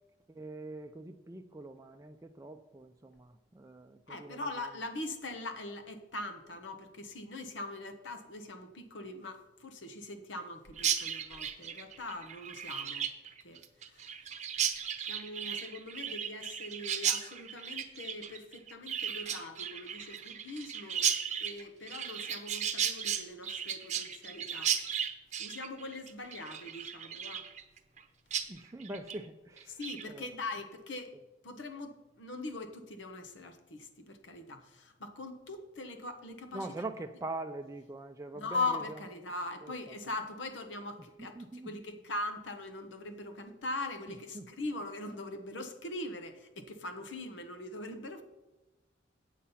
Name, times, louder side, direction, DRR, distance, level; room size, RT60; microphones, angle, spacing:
voice 1, 0.3-4.5 28.5-29.8 30.0-30.3 36.5-38.8 39.6-39.9 41.2-41.8 44.3-44.4, right 2 dB, 15° right, 0.4 m, -43 dB
voice 2, 4.1-13.1 13.4-13.6 13.9-14.1 15.0-21.1 21.4-24.8 25.4-27.5 29.7-31.2 31.4-36.7 38.3-48.2, left 2 dB, 85° left, 1.1 m, -41 dB
Chirp tweet, 10.8-28.0 28.3-28.5 28.8-29.2 29.6-30.0, right 9 dB, 40° right, 0.8 m, -35 dB
8.5 x 7.4 x 5.6 m
head